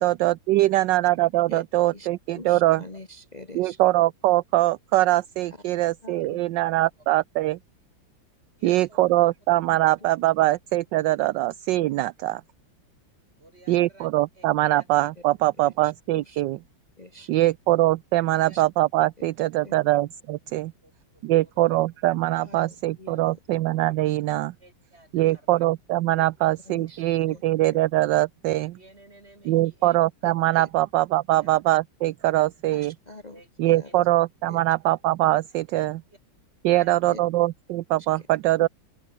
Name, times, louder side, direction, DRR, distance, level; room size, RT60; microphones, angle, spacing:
voice 1, 0.0-2.8 3.5-7.6 8.6-12.4 13.7-16.6 17.3-20.7 21.2-24.5 25.1-28.8 29.5-32.9 33.6-36.0 36.6-38.7, right 16 dB, 75° right, 1.2 m, -22 dB
voice 2, 0.7-1.0 8.6-9.1 13.4-14.1 14.3-14.4 14.7-14.9 17.2-17.5 18.4-18.6 19.5-19.7 20.8-21.8 24.6-25.6 28.7-30.0 31.4-31.6 33.3-33.9 36.1-36.2 36.7-37.1, right 1 dB, 30° right, 6.2 m, -53 dB
voice 3, 2.3-3.8 6.0-6.4 11.2-11.3 15.6-16.4 17.0-17.3 18.5-18.6 19.0-19.3 19.6-19.8 22.4-23.4 25.2-25.4 26.2-26.3 26.6-27.4 27.7-27.8 30.2-30.7 32.7-34.0 34.5-34.6 37.1-37.2 38.0-38.3 38.6-38.7, left 2 dB, 25° left, 1.6 m, -45 dB
open air
omnidirectional pair, 2.1 m